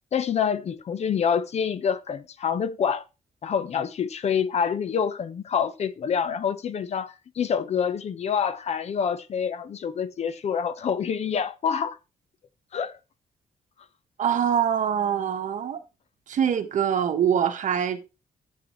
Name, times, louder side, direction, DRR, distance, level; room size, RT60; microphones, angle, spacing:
voice 1, 0.1-3.0 3.4-12.0 12.7-12.9, left 7 dB, 50° left, 1.0 m, -27 dB
voice 2, 14.2-15.8 16.3-18.0, right 8 dB, 65° right, 1.4 m, -24 dB
14.0 x 7.5 x 3.2 m
cardioid pair, 130°, 14 cm